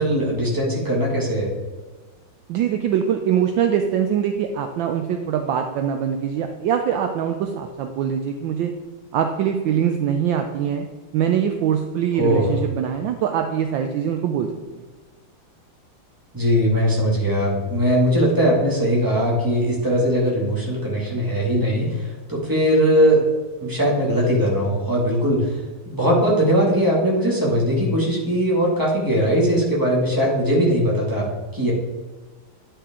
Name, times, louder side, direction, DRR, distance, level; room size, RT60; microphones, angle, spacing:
voice 1, 0.0-1.5 12.1-12.5 16.3-23.2 23.6-25.6 25.9-31.3 31.5-31.7, equal, 10° right, -4 dB, 1.9 m, -20 dB
voice 2, 2.5-8.7 9.1-10.9 11.1-14.5 14.7-14.8, right 8 dB, 75° right, 5 dB, 1.2 m, -23 dB
9.7 x 5.6 x 3.6 m, 1.3 s
omnidirectional pair, 2.3 m